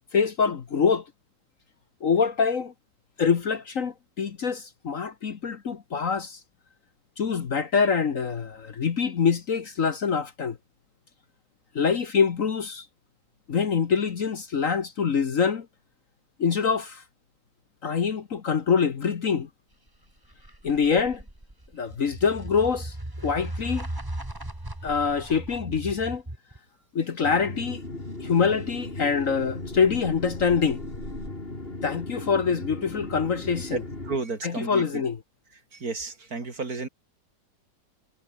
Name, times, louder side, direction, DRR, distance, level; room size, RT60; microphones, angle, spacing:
voice 1, 0.1-1.0 2.0-2.7 3.2-6.4 7.2-10.6 11.7-12.9 13.5-15.7 16.4-17.0 17.8-19.5 20.6-21.2 21.7-22.9 23.2-23.9 24.8-26.2 26.9-27.8 28.2-30.8 31.8-33.8 34.4-35.2, left 6 dB, 50° left, 1.5 m, -25 dB
sound 1, 19.9-26.6 29.2-31.3, right 1 dB, 10° right, 2.7 m, -38 dB
sound 2, 27.2-34.2, left 2 dB, 30° left, 4.4 m, -37 dB
voice 2, 33.7-35.0 35.7-36.9, right 3 dB, 55° right, 3.6 m, -32 dB
omnidirectional pair, 1.9 m